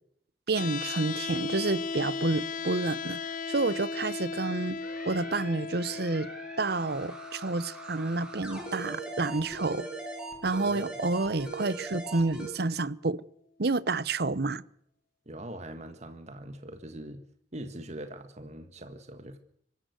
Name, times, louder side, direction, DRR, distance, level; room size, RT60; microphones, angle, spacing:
sound 1, 0.5-12.6, left 4 dB, 50° left, 1.0 m, -38 dB
voice 1, 0.5-4.8 5.0-6.3 6.6-9.9 10.4-13.2 13.6-14.6, right 3 dB, 65° right, 1.0 m, -29 dB
sound 2, 4.8-12.5, right 2 dB, 5° right, 7.3 m, -41 dB
voice 2, 10.6-10.9 15.2-17.2 17.5-19.4, right 1 dB, 40° right, 1.6 m, -42 dB
25.0 x 14.5 x 8.1 m
head